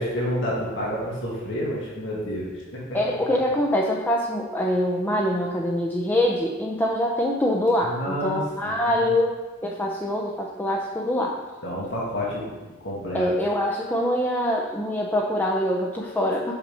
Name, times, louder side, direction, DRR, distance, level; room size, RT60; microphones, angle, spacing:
voice 1, 0.0-3.2 7.8-9.0 11.6-13.3, equal, 70° left, -5 dB, 1.9 m, -30 dB
voice 2, 2.9-11.4 13.1-16.5, left 1 dB, 10° left, -1 dB, 0.5 m, -24 dB
5.8 x 5.4 x 5.5 m, 1.3 s
head